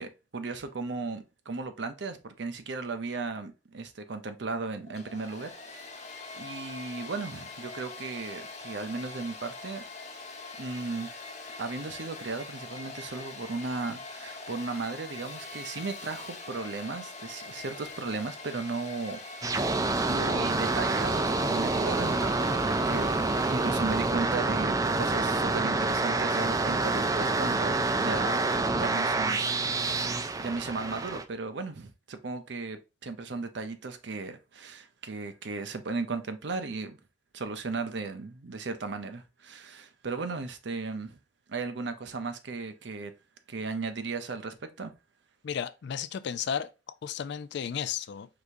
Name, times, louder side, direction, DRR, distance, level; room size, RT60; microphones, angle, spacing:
voice 1, 0.0-5.8 6.3-9.8 10.6-11.1 11.6-23.1 23.5-28.4 28.7-37.0 37.3-41.2 41.5-43.1 43.5-44.9, right 3 dB, 65° right, 0.7 m, -36 dB
Domestic sounds home sounds, 4.8-24.4, left 3 dB, 40° left, 1.2 m, -43 dB
sound 1, 19.4-31.2, right 3 dB, 20° right, 0.4 m, -27 dB
voice 2, 45.4-46.7 47.0-48.3, left 8 dB, 65° left, 0.4 m, -33 dB
4.9 x 3.5 x 2.6 m
head